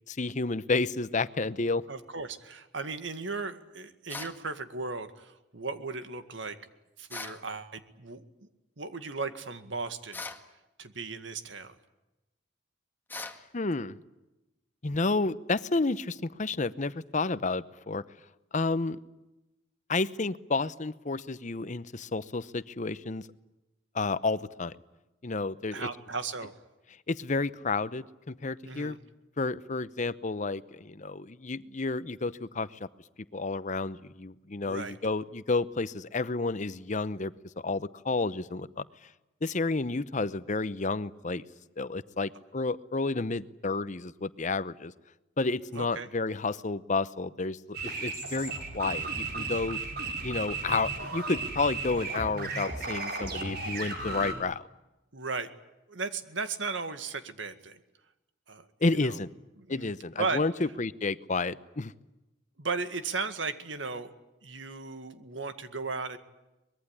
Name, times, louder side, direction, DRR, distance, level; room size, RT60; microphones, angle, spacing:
voice 1, 0.1-1.8 13.5-14.0 14.8-18.0 18.5-19.0 19.9-23.2 23.9-24.7 25.2-25.9 27.1-29.0 29.4-32.9 33.3-37.3 37.6-38.9 39.4-41.4 41.8-44.9 45.4-49.8 50.2-54.6 58.8-59.3 59.7-61.9, left 3 dB, 40° left, 15 dB, 0.8 m, -31 dB
voice 2, 1.9-6.6 7.0-8.5 8.8-10.2 10.8-11.8 25.7-26.5 28.7-29.0 34.7-35.0 45.8-46.1 55.1-55.5 55.9-57.8 58.5-59.2 59.6-59.9 60.2-60.4 62.6-64.1 64.4-66.2, right 4 dB, 80° right, 10 dB, 2.0 m, -36 dB
sound 1, 4.1-4.4 7.1-7.4 10.1-10.5 13.1-13.4, left 3 dB, 10° left, 1.8 m, -39 dB
sound 2, 47.7-54.3, right 3 dB, 55° right, 5.4 m, -35 dB
24.0 x 21.0 x 9.9 m, 0.99 s
head